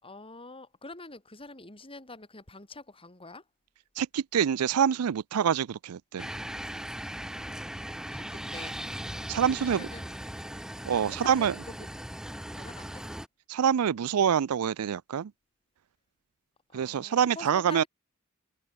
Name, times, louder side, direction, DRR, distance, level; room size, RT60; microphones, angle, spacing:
voice 1, 0.0-3.5 8.1-8.8 9.5-10.1 11.1-11.9 12.5-13.1 16.7-17.9, left 2 dB, 25° left, 5.2 m, -46 dB
voice 2, 4.0-6.3 9.3-9.9 10.9-11.5 13.5-15.3 16.7-17.8, right 8 dB, 80° right, 0.4 m, -26 dB
sound 1, 6.2-13.3, equal, 5° right, 0.9 m, -39 dB
head